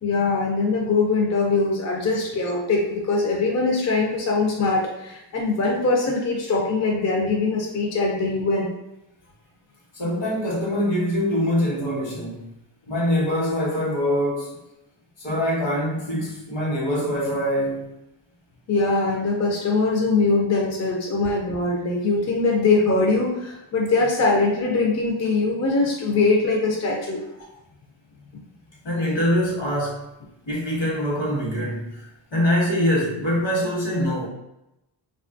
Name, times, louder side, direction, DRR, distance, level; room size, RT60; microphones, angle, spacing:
voice 1, 0.0-8.7 18.7-27.2, left 3 dB, 35° left, -2 dB, 0.5 m, -22 dB
voice 2, 9.9-12.5 12.9-14.5 15.2-17.9 28.8-30.0 30.5-32.1 32.3-34.3, equal, 65° left, -3 dB, 1.1 m, -24 dB
2.9 x 2.3 x 2.5 m, 0.87 s
wide cardioid pair, 120°, 47 cm